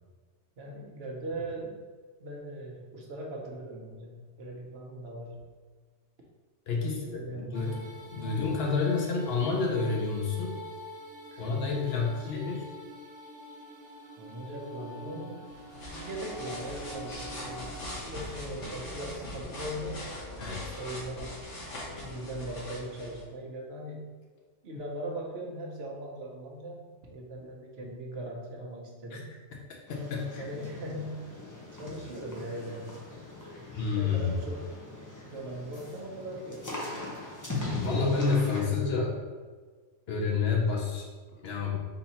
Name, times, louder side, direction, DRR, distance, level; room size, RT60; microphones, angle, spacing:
voice 1, 0.6-1.8 2.2-5.5 6.7-7.7 8.2-8.5 11.3-11.4 11.9-12.4 14.2-15.5 15.8-20.1 20.8-21.6 21.9-24.2 24.6-29.3 30.4-31.4 31.7-33.0 33.9-34.8 35.2-36.9, right 1 dB, 60° right, -1 dB, 1.0 m, -40 dB
voice 2, 6.7-10.6 11.4-12.7 20.4-20.8 29.1-29.2 30.1-30.4 33.8-34.3 37.8-39.1 40.1-41.1 41.4-41.8, left 4 dB, 60° left, -1 dB, 1.0 m, -29 dB
sound 1, 7.5-18.0, right 1 dB, 85° right, 1.3 m, -45 dB
sound 2, 15.5-23.2, left 1 dB, 80° left, 1.6 m, -41 dB
sound 3, 29.9-38.6, left 2 dB, 20° left, 0.6 m, -40 dB
4.0 x 2.7 x 4.1 m, 1.4 s
omnidirectional pair, 1.2 m